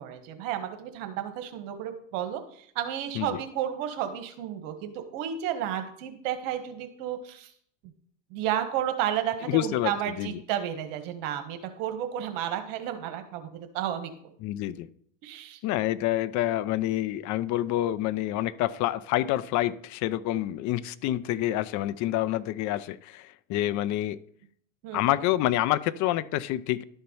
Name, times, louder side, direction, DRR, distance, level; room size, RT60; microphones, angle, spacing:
voice 1, 0.0-2.4 2.7-7.5 8.3-14.1 15.2-15.6 24.8-25.2, right 10 dB, 70° right, 8 dB, 1.4 m, -32 dB
voice 2, 9.5-10.4 14.4-14.9 15.6-24.2 24.9-26.8, left 14 dB, 45° left, 16 dB, 0.6 m, -27 dB
12.0 x 4.5 x 5.4 m, 0.62 s
supercardioid pair, 120°, 40 cm